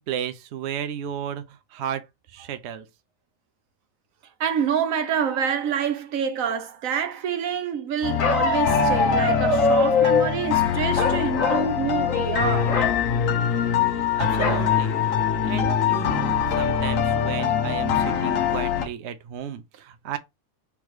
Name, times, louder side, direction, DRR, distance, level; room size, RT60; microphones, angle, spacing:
voice 1, 0.0-2.9 14.2-15.0 15.4-20.2, right 9 dB, 65° right, 0.8 m, -33 dB
voice 2, 4.4-12.8, right 7 dB, 85° right, 1.2 m, -27 dB
sound 1, 8.0-18.8, left 8 dB, 80° left, 1.2 m, -23 dB
Bark, 8.2-10.3 11.0-11.7 12.0-12.3 12.6-13.0 14.4-14.7 15.2-15.3 15.6-16.1, left 3 dB, 45° left, 1.0 m, -23 dB
3.6 x 3.0 x 4.7 m
omnidirectional pair, 1.4 m